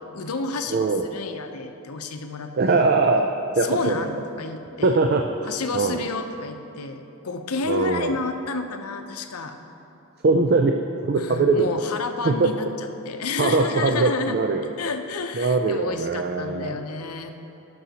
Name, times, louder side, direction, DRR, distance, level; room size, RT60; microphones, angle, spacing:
voice 1, 0.0-2.8 3.6-5.0 5.5-9.6 11.2-14.4 14.8-17.3, left 4 dB, 90° left, 6 dB, 0.6 m, -30 dB
voice 2, 0.7-1.1 2.5-3.3 3.6-4.1 4.8-5.3 5.7-6.0 7.7-8.1 10.2-10.8 11.0-11.8 12.2-12.7 13.4-14.7 15.4-16.8, right 3 dB, 45° right, 4 dB, 0.4 m, -21 dB
17.5 x 6.3 x 2.9 m, 2.9 s
head